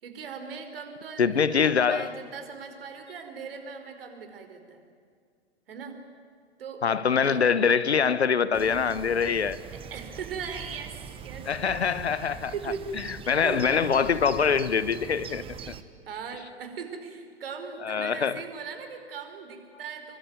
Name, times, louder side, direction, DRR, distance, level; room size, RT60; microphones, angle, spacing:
voice 1, 0.0-4.8 5.7-6.0 6.6-7.5 9.7-11.8 12.5-12.8 13.4-14.0 16.1-20.2, right 6 dB, 55° right, 4.7 m, -39 dB
voice 2, 1.2-2.1 6.8-9.6 11.5-12.5 13.3-15.7 17.8-18.4, left 6 dB, 70° left, 1.3 m, -24 dB
sound 1, 8.5-15.8, right 7 dB, 15° right, 1.3 m, -42 dB
26.5 x 23.5 x 9.6 m
figure-of-eight pair, 105°, 34 cm